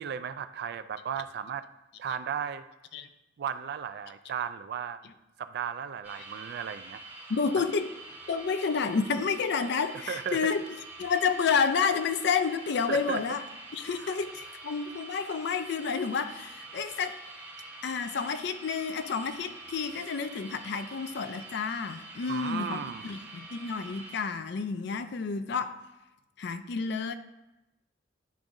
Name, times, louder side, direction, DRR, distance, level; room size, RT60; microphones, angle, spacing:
voice 1, 0.0-1.6 2.0-2.6 3.4-5.0 5.4-7.0 10.1-10.4 12.9-13.2 14.0-14.1 22.3-23.1, right 7 dB, 60° right, 12 dB, 0.3 m, -35 dB
sound 1, 6.0-24.3, right 2 dB, 10° right, 1.2 m, -46 dB
voice 2, 7.3-7.9 8.3-10.6 11.0-13.4 13.7-17.2 17.8-25.8 26.4-27.1, left 5 dB, 65° left, 10 dB, 0.4 m, -30 dB
10.5 x 3.5 x 2.6 m, 0.97 s
head